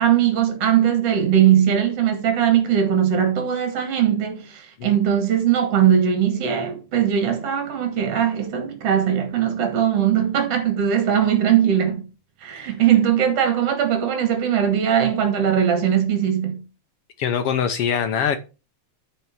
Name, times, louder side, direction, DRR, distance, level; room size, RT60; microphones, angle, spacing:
voice 1, 0.0-12.1 12.4-16.6, right 9 dB, 55° right, 3.0 m, -20 dB
voice 2, 17.2-18.4, left 7 dB, 70° left, 1.5 m, -23 dB
9.1 x 5.6 x 6.0 m
omnidirectional pair, 3.4 m